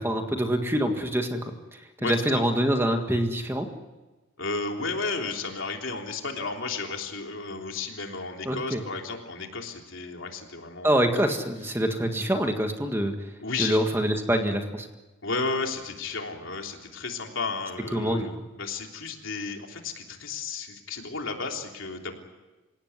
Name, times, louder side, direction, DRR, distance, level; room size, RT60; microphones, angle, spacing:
voice 1, 0.0-3.7 8.5-8.8 10.8-13.1 13.6-14.9 17.9-18.3, equal, 10° right, 5 dB, 1.7 m, -25 dB
voice 2, 2.0-2.4 4.4-11.1 13.4-13.8 15.2-22.2, left 4 dB, 70° left, 2 dB, 3.4 m, -33 dB
27.5 x 17.5 x 9.6 m, 1.2 s
head